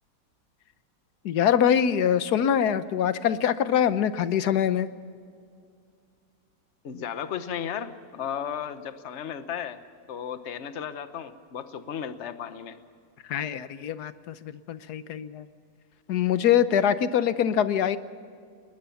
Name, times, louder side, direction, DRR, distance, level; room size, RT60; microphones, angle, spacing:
voice 1, 1.2-4.9 13.3-15.5 16.1-18.0, left 9 dB, 65° left, 13 dB, 1.3 m, -24 dB
voice 2, 6.8-9.8 10.1-12.8, left 8 dB, 45° left, 10 dB, 1.2 m, -34 dB
20.5 x 20.5 x 7.1 m, 2.3 s
omnidirectional pair, 2.0 m